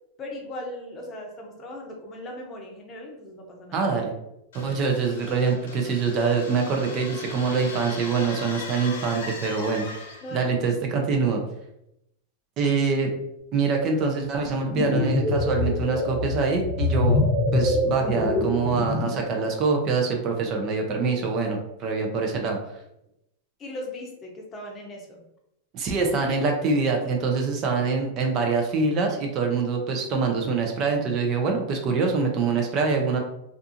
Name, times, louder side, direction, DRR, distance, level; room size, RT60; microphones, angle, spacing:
voice 1, 0.2-3.8 10.2-10.5 23.6-25.2, left 1 dB, 30° left, 1 dB, 0.7 m, -38 dB
voice 2, 3.7-4.1 4.5-9.8 10.3-11.4 12.6-13.1 13.5-22.6 25.7-33.2, right 4 dB, 40° right, 2 dB, 0.5 m, -25 dB
sound 1, 4.5-10.4, left 3 dB, 80° left, 0.7 m, -39 dB
sound 2, 14.5-19.3, left 2 dB, 5° left, 0.9 m, -24 dB
2.5 x 2.3 x 2.7 m, 0.83 s
hypercardioid pair, 120°, 0 cm